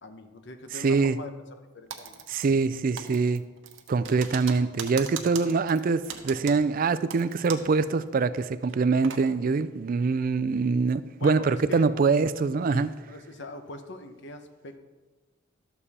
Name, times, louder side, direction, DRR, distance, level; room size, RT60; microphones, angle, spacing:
voice 1, 0.0-1.3 1.6-2.2 11.2-11.9 12.7-14.8, left 2 dB, 60° left, 0.9 m, -42 dB
voice 2, 0.7-1.2 2.3-3.4 3.9-12.9, right 4 dB, 45° right, 0.4 m, -24 dB
Typing, 1.9-2.7 3.0-7.8 8.1-8.2 8.6-9.2, right 7 dB, 80° right, 1.0 m, -40 dB
12.5 x 7.1 x 4.2 m
head